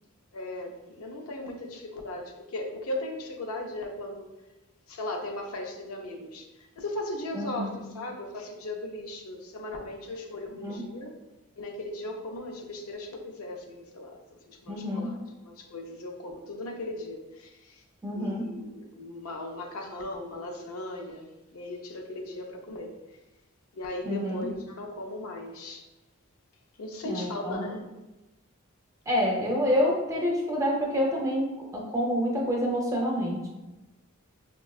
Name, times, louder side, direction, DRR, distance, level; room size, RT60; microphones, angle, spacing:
voice 1, 0.3-4.3 4.9-6.5 6.8-11.2 11.6-17.8 18.1-22.9 23.7-25.8 26.8-27.9, left 1 dB, 70° left, 3 dB, 0.5 m, -37 dB
voice 2, 7.3-7.7 10.5-10.8 14.7-15.1 18.0-18.5 24.0-24.5 27.0-27.7 29.1-33.5, equal, 15° right, -1 dB, 0.6 m, -28 dB
5.3 x 2.2 x 2.3 m, 1.0 s
head